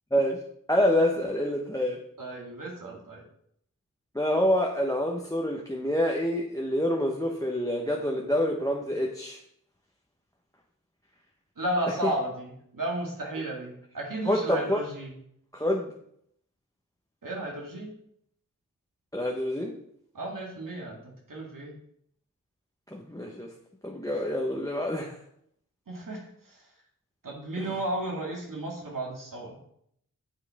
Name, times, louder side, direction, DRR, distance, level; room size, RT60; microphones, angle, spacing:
voice 1, 0.7-2.0 4.1-9.4 14.3-14.8 15.5-15.9 19.1-19.8 22.9-23.5 23.8-25.2, equal, 10° left, 0 dB, 1.1 m, -27 dB
voice 2, 2.2-3.2 11.6-15.2 17.2-17.9 20.1-21.8 25.9-26.7 27.2-29.6, right 1 dB, 70° right, -1 dB, 2.0 m, -34 dB
8.7 x 7.4 x 3.6 m, 0.69 s
wide cardioid pair, 60°, 34 cm